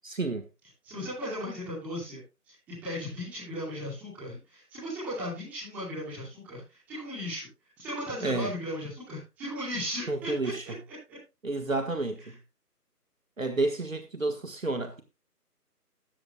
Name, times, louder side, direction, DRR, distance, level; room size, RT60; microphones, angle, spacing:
voice 1, 0.0-0.5 8.2-8.5 10.1-10.8 11.4-12.4 13.4-15.0, right 2 dB, 55° right, 1.5 m, -30 dB
voice 2, 0.8-2.2 2.8-7.5 7.8-10.9, equal, 5° right, 4.0 m, -36 dB
17.0 x 13.0 x 2.3 m
figure-of-eight pair, 170°, 48 cm